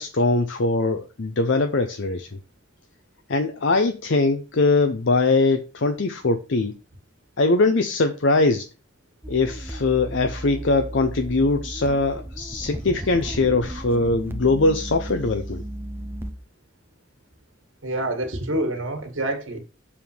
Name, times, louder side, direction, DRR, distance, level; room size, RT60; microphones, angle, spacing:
voice 1, 0.0-2.4 3.3-6.7 7.4-8.7 9.3-15.6, left 3 dB, 70° left, 0.7 m, -21 dB
sound 1, 9.2-16.3, right 1 dB, 10° right, 0.7 m, -34 dB
voice 2, 17.8-19.6, right 1 dB, 85° right, 2.0 m, -27 dB
7.1 x 3.7 x 6.2 m
head